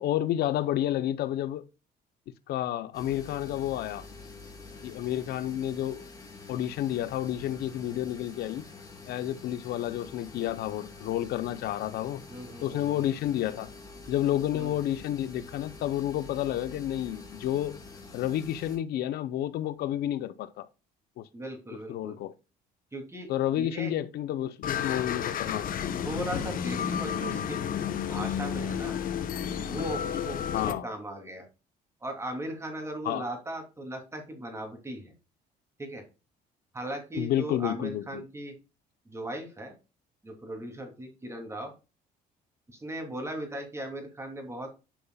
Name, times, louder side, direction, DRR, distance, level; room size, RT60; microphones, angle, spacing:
voice 1, 0.0-1.7 2.5-4.1 4.8-6.0 6.5-8.6 9.1-12.2 12.6-13.7 14.1-17.8 18.1-20.7 21.2-21.3 21.9-22.3 23.3-25.7 30.5-30.9 33.0-33.3 37.1-38.2, left 12 dB, 70° left, 0.6 m, -30 dB
sound 1, 2.9-18.8, left 3 dB, 25° left, 3.6 m, -47 dB
voice 2, 12.3-13.1 14.5-14.7 21.3-22.2 22.9-23.3 23.5-23.9 26.0-27.7 28.1-29.0 29.7-31.4 32.0-35.1 35.8-36.0 36.7-38.5 39.1-39.7 40.2-41.7 42.7-44.7, right 1 dB, 15° right, 3.0 m, -38 dB
sound 2, 24.6-30.7, left 8 dB, 55° left, 1.1 m, -31 dB
10.0 x 5.6 x 2.3 m
cardioid pair, 110°, 17 cm